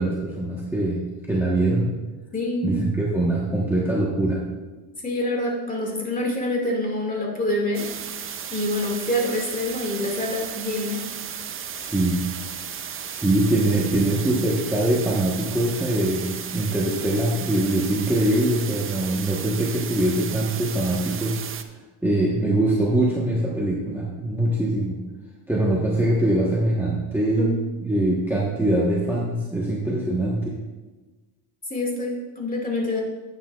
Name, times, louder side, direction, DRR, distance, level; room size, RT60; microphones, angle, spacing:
voice 1, 0.0-1.9 2.6-4.4 11.7-12.3 13.1-21.4 22.0-25.0 25.5-27.5 27.8-30.6, right 1 dB, 5° right, -5 dB, 1.1 m, -23 dB
voice 2, 2.3-2.8 5.0-7.9 8.5-11.0 27.4-27.6 31.7-33.0, left 1 dB, 20° left, -1 dB, 2.1 m, -26 dB
sound 1, 7.7-21.6, right 8 dB, 30° right, 0.5 m, -34 dB
9.9 x 9.0 x 2.4 m, 1.2 s
cardioid pair, 120°, 44 cm